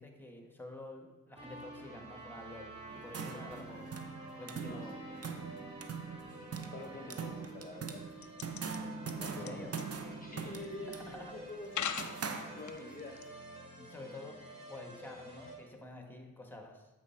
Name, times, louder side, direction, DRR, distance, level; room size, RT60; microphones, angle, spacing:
voice 1, 0.0-3.9 4.4-5.0 9.3-9.7 10.8-11.4 13.8-14.4 14.7-16.9, left 1 dB, 5° left, 3 dB, 1.3 m, -49 dB
sound 1, 1.3-15.5, right 1 dB, 20° right, 2.4 m, -50 dB
sound 2, 2.9-13.0, right 5 dB, 50° right, 0.8 m, -43 dB
voice 2, 6.7-8.3 9.1-9.7 10.2-12.1 12.4-13.2 13.8-13.9 14.2-14.4, left 2 dB, 25° left, 1 dB, 0.8 m, -47 dB
sound 3, 8.2-8.8 9.1-9.5 9.8-9.9 10.6-10.7 11.6-12.1 12.7-13.2, left 8 dB, 60° left, 0.6 m, -37 dB
8.4 x 4.7 x 4.4 m, 1.1 s
cardioid pair, 50°, 33 cm